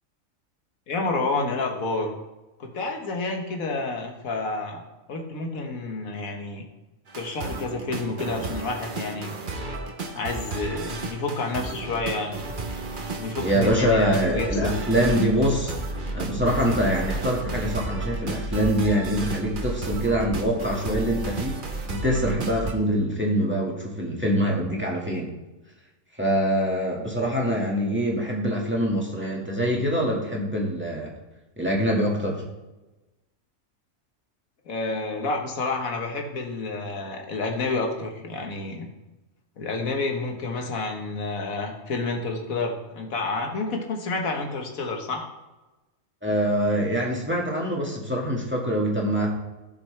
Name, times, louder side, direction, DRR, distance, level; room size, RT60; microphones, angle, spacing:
voice 1, 0.9-2.1 2.6-4.8 5.1-6.6 7.1-9.3 10.1-12.5 13.2-14.7 34.7-38.9 39.6-45.3, left 3 dB, 85° left, 2 dB, 1.7 m, -29 dB
sound 1, 7.1-22.7, right 3 dB, 40° right, 1.1 m, -32 dB
voice 2, 13.4-15.7 16.1-21.6 21.9-25.3 26.1-31.1 31.6-32.4 46.2-49.3, equal, 10° right, -3 dB, 1.8 m, -24 dB
15.0 x 6.1 x 3.3 m, 1.1 s
omnidirectional pair, 1.4 m